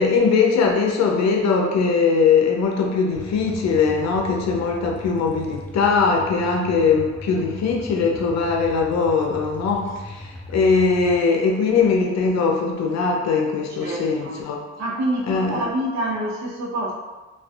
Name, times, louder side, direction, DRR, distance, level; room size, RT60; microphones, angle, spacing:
voice 1, 0.0-14.6 15.3-15.6, left 5 dB, 60° left, 1 dB, 0.6 m, -20 dB
sound 1, 3.2-11.2, equal, 5° left, 0.3 m, -38 dB
voice 2, 13.7-14.4 14.8-16.9, right 1 dB, 65° right, -3 dB, 0.8 m, -27 dB
2.5 x 2.4 x 2.3 m, 1.2 s
cardioid pair, 90°, 30 cm